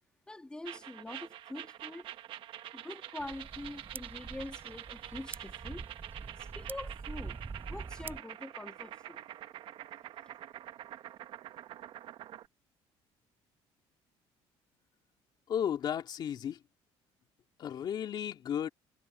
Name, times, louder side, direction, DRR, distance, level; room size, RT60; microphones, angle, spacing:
voice 1, 0.3-2.1 2.7-5.9 6.6-7.4 7.7-9.2, left 2 dB, 10° left, 2.1 m, -44 dB
sound 1, 0.7-12.5, right 12 dB, 60° right, 1.2 m, -46 dB
sound 2, 3.2-8.2, right 4 dB, 20° right, 5.9 m, -45 dB
voice 2, 15.5-16.6 17.6-18.7, left 9 dB, 45° left, 2.5 m, -34 dB
cardioid pair, 140°, 10 cm